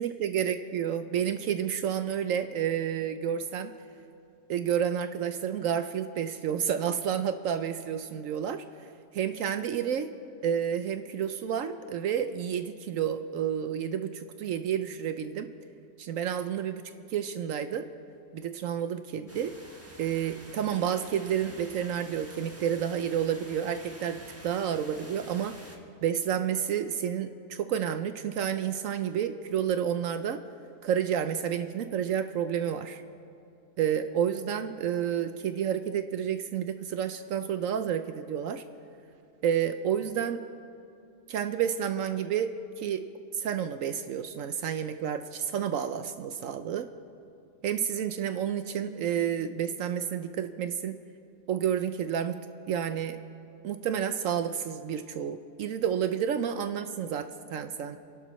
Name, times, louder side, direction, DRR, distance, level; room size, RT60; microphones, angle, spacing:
voice 1, 0.0-3.7 4.5-8.6 9.1-10.1 10.4-15.5 16.0-16.8 17.1-17.8 18.3-19.5 20.0-25.6 26.0-30.4 30.8-33.0 33.8-38.6 39.4-40.4 41.3-43.0 43.3-46.9 47.6-51.0 51.5-52.4 52.7-53.2 53.6-58.0, right 9 dB, 70° right, 10 dB, 0.8 m, -30 dB
sound 1, 19.3-25.8, right 1 dB, 10° right, 1.1 m, -49 dB
29.5 x 11.5 x 3.1 m, 2.5 s
omnidirectional pair, 1.8 m